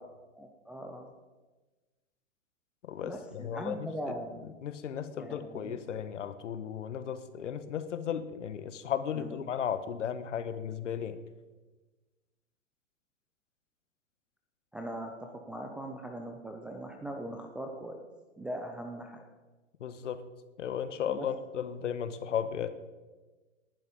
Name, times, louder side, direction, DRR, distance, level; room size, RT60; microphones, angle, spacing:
voice 1, 0.4-1.1 3.0-4.6 5.2-5.8 9.1-9.5 14.7-18.0 18.4-19.2 21.1-21.3, right 1 dB, 5° right, 1 dB, 0.4 m, -40 dB
voice 2, 2.9-3.9 4.6-11.2 19.8-20.2 20.6-22.7, left 8 dB, 65° left, 12 dB, 1.5 m, -35 dB
18.5 x 11.5 x 5.4 m, 1.2 s
hypercardioid pair, 120°, 40 cm